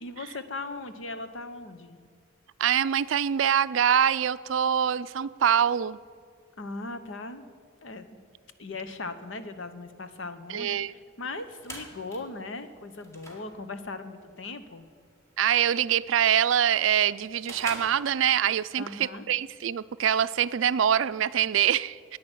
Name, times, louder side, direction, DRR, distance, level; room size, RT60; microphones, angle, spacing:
voice 1, 0.0-2.0 6.6-7.5 7.8-8.0 8.6-14.8 18.8-19.2, left 3 dB, 70° left, 10 dB, 1.0 m, -38 dB
voice 2, 2.6-6.0 10.5-10.9 15.4-22.2, right 9 dB, 70° right, 16 dB, 0.4 m, -24 dB
sound 1, 11.2-18.7, equal, 15° left, 1.8 m, -47 dB
11.0 x 9.5 x 9.2 m, 2.1 s
head